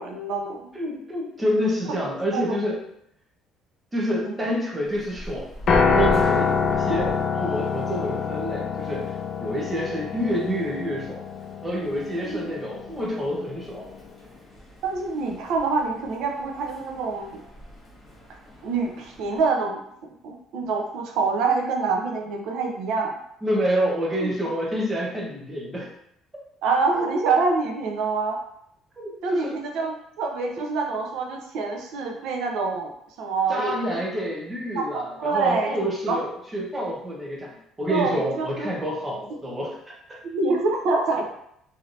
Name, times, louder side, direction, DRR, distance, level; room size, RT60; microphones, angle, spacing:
voice 1, 0.0-0.6 1.8-2.0 2.3-2.6 4.2-4.5 6.9-7.2 12.2-12.5 14.8-17.4 18.6-19.8 20.2-23.2 24.2-24.3 26.6-28.4 29.2-32.9 33.2-34.0 34.7-35.7 36.0-36.2 37.9-38.7 40.2-41.3, right 4 dB, 75° right, 1 dB, 0.6 m, -26 dB
voice 2, 0.7-2.8 3.9-5.5 5.8-11.2 11.6-13.9 23.4-25.9 29.0-29.5 33.5-40.2, equal, 15° right, -3 dB, 0.8 m, -28 dB
sound 1, 4.8-19.5, equal, 20° left, 1.1 m, -41 dB
Piano, 5.7-13.9, left 5 dB, 45° left, 0.4 m, -26 dB
3.2 x 2.7 x 2.6 m, 0.74 s
cardioid pair, 145°, 0 cm